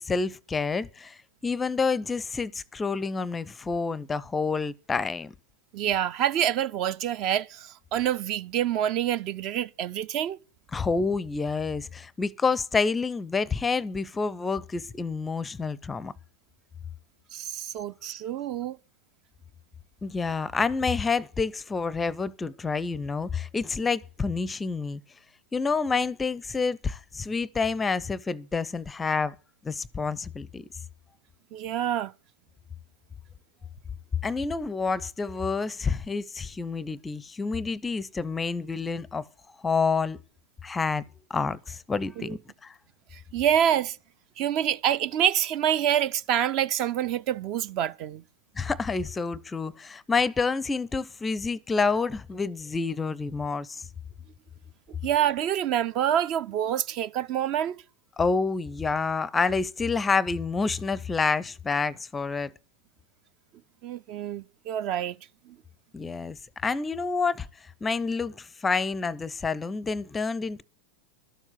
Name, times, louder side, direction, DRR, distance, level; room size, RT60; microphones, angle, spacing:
voice 1, 0.0-5.3 10.7-16.1 20.0-25.0 25.5-29.3 29.6-30.7 34.2-39.3 39.6-40.2 40.6-41.0 41.3-42.7 48.6-53.8 58.2-62.5 65.9-67.5 67.8-70.6, left 4 dB, 15° left, 0.5 m, -28 dB
voice 2, 5.7-10.4 17.3-18.8 31.5-32.1 42.2-42.4 43.1-44.0 44.4-48.2 55.0-57.8 63.8-65.2 65.5-65.6, right 10 dB, 40° right, 0.5 m, -27 dB
12.5 x 7.2 x 7.8 m
figure-of-eight pair, 90°, 0 cm